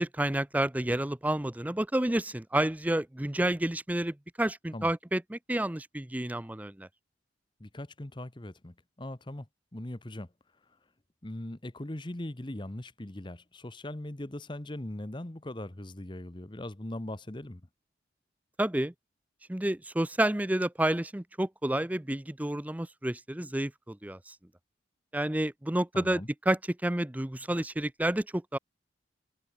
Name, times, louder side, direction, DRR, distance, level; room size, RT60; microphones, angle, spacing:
voice 1, 0.0-6.9 18.6-18.9 19.5-24.3 25.1-26.2 26.5-28.6, right 1 dB, 10° right, 0.5 m, -30 dB
voice 2, 7.6-10.3 11.2-17.6 25.9-26.3, left 1 dB, 25° left, 1.1 m, -40 dB
head